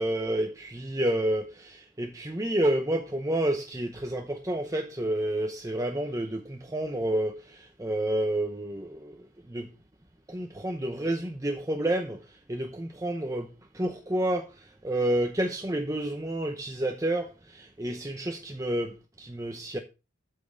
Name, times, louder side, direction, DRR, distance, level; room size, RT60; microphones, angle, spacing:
voice 1, 0.0-9.7 10.3-19.8, right 1 dB, 15° right, 0.8 m, -30 dB
8.4 x 7.6 x 3.9 m
head